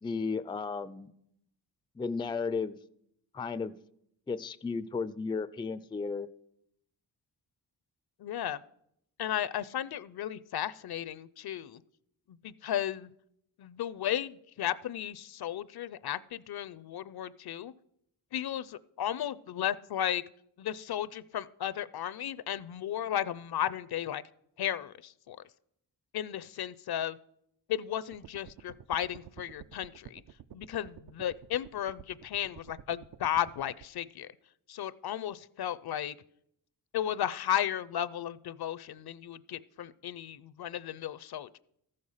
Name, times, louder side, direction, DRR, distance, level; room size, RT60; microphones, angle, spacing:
voice 1, 0.0-1.1 2.0-2.8 3.3-3.8 4.3-6.3, left 4 dB, 10° left, 14 dB, 0.3 m, -34 dB
voice 2, 8.2-8.6 9.2-11.8 12.3-13.1 13.6-17.7 18.3-20.2 20.6-24.2 24.6-25.4 26.1-27.2 27.7-30.2 30.5-34.3 34.7-36.1 36.9-41.5, left 11 dB, 60° left, 18 dB, 0.5 m, -34 dB
sound 1, 28.1-33.9, right 9 dB, 55° right, 0.5 m, -51 dB
14.0 x 6.6 x 5.5 m, 0.74 s
cardioid pair, 85°, 42 cm